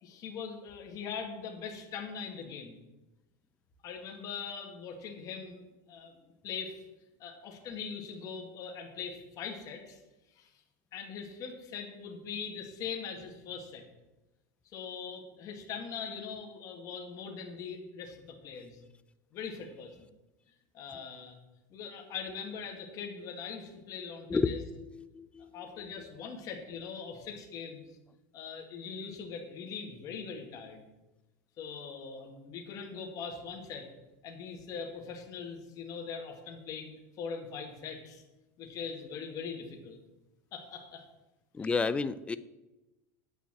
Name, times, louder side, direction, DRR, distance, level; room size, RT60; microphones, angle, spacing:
voice 1, 0.0-2.8 3.8-6.8 7.2-10.0 10.4-10.5 10.9-13.8 14.7-18.8 19.3-20.1 20.7-21.4 21.7-24.6 25.5-27.9 28.3-30.8 31.6-33.9 34.2-36.9 37.2-38.2 38.6-40.0 40.5-41.0 41.6-41.9, left 6 dB, 40° left, 2 dB, 1.8 m, -41 dB
voice 2, 24.3-25.6 41.5-42.4, left 4 dB, 10° left, 15 dB, 0.4 m, -31 dB
8.9 x 5.7 x 7.4 m, 1.0 s
supercardioid pair, 135°, 9 cm